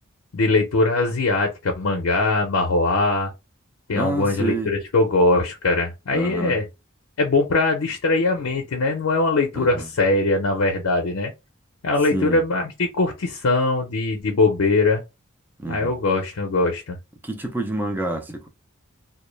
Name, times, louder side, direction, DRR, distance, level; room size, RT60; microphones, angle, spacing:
voice 1, 0.3-3.3 3.9-6.6 7.2-11.3 11.8-15.0 15.7-17.0, left 2 dB, 70° left, 0.5 m, -21 dB
voice 2, 3.9-4.7 6.1-6.6 9.5-9.9 12.1-12.4 15.6-15.9 17.2-18.5, right 2 dB, 10° right, 0.3 m, -28 dB
2.1 x 2.0 x 3.0 m
head